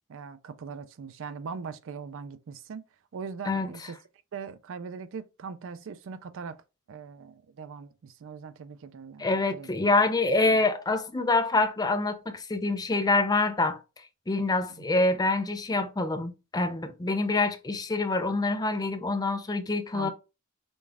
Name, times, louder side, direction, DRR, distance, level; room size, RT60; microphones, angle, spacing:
voice 1, 0.1-2.8 3.1-4.0 4.3-6.6 6.9-9.3 9.5-9.7 10.4-10.6 14.8-15.0 19.9-20.1, right 5 dB, 60° right, 0.4 m, -40 dB
voice 2, 9.2-13.8 14.3-20.1, left 3 dB, 20° left, 0.5 m, -26 dB
5.3 x 2.3 x 3.4 m
head